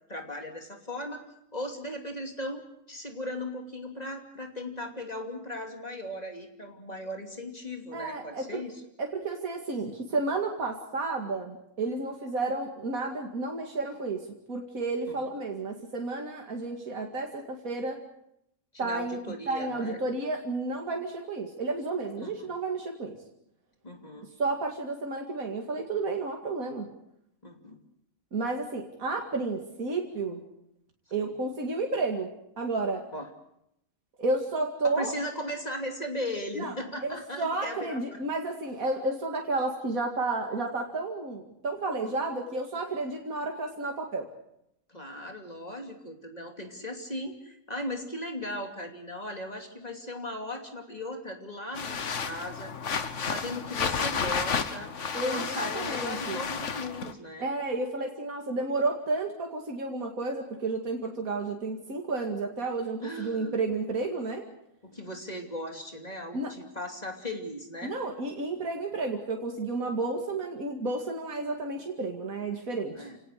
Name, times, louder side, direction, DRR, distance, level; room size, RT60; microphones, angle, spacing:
voice 1, 0.1-1.2 1.5-8.8 15.1-15.2 18.8-20.0 22.2-22.5 23.8-24.3 27.4-27.8 31.2-31.3 33.1-33.3 34.9-38.2 44.9-52.7 53.3-54.9 55.3-57.5 63.0-63.6 64.8-67.9 72.9-73.2, left 1 dB, 30° left, 3 dB, 2.9 m, -37 dB
voice 2, 7.9-8.6 9.0-18.0 18.8-19.2 19.5-23.2 24.4-26.9 28.3-30.4 31.1-33.0 34.2-35.1 36.5-36.7 37.0-44.3 55.1-56.4 57.4-64.4 66.3-66.5 67.8-73.1, right 3 dB, 85° right, 1 dB, 2.7 m, -31 dB
sound 1, 51.7-57.1, left 6 dB, 60° left, 1.6 m, -32 dB
29.5 x 18.0 x 6.6 m, 0.79 s
omnidirectional pair, 1.4 m